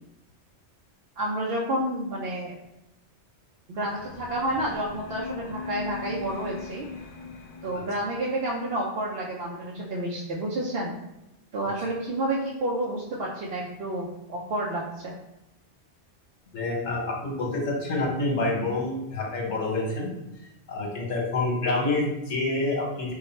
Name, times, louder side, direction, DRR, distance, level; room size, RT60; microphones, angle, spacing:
voice 1, 1.2-2.6 3.7-6.9 7.6-11.0 11.5-15.2, right 1 dB, 65° right, -3 dB, 0.8 m, -30 dB
sound 1, 3.9-8.5, left 5 dB, 60° left, 0.3 m, -40 dB
voice 2, 16.5-20.1 20.7-23.1, left 2 dB, 85° left, -2 dB, 1.4 m, -27 dB
4.6 x 2.2 x 4.3 m, 0.90 s
omnidirectional pair, 1.2 m